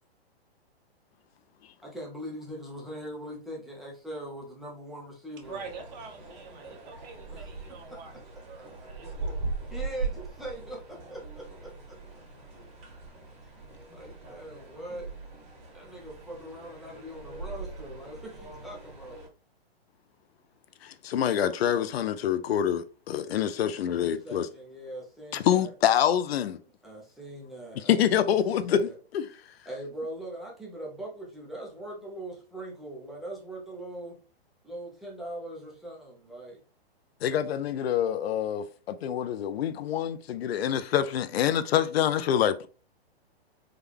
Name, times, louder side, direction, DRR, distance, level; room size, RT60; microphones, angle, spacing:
voice 1, 1.8-5.6 7.3-7.5 7.9-8.0 9.7-12.0 13.9-15.1 15.7-19.2 23.6-25.7 26.8-28.9 29.7-34.2 34.6-36.6, right 1 dB, ahead, 0.4 m, -41 dB
sound 1, 5.4-19.3, right 3 dB, 20° right, 1.5 m, -40 dB
voice 2, 5.5-8.1 8.5-9.5, right 5 dB, 45° right, 1.1 m, -45 dB
voice 3, 20.8-24.5 25.3-26.6 27.7-29.3 37.2-42.7, left 9 dB, 75° left, 0.5 m, -26 dB
3.7 x 2.2 x 3.3 m
hypercardioid pair, 145°, 31 cm